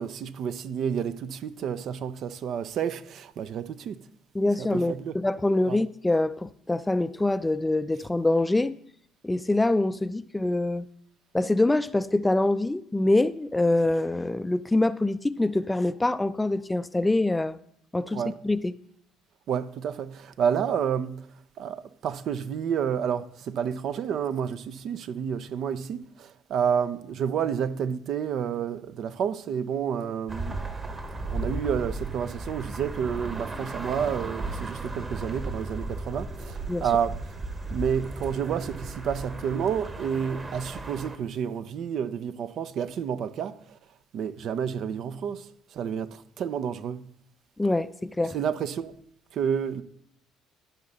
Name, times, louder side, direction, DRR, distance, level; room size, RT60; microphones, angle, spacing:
voice 1, 0.0-4.0 4.6-5.1 5.7-5.8 18.1-18.3 19.5-21.3 21.6-31.0 31.3-37.2 37.7-43.8 44.1-47.0 48.3-48.9 49.3-49.8, right 8 dB, 55° right, 0.6 m, -30 dB
voice 2, 4.3-8.8 9.2-10.9 11.3-17.6 17.9-18.7 36.7-36.8 47.6-48.4, left 2 dB, 15° left, 0.5 m, -25 dB
sound 1, 30.3-41.2, right 2 dB, 30° right, 1.4 m, -35 dB
13.0 x 5.8 x 4.0 m
hypercardioid pair, 55°, 0 cm